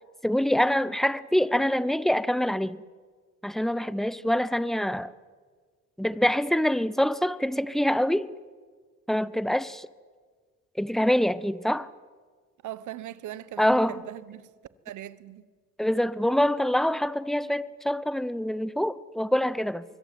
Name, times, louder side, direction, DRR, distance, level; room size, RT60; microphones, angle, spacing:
voice 1, 0.2-2.8 3.4-5.1 6.0-8.3 9.1-9.9 10.8-11.9 13.6-14.0 15.8-19.8, equal, ahead, 1.0 m, -25 dB
voice 2, 12.6-14.5 14.8-15.5, right 13 dB, 75° right, 1.3 m, -40 dB
24.5 x 22.5 x 9.3 m
cardioid pair, 90°, 30 cm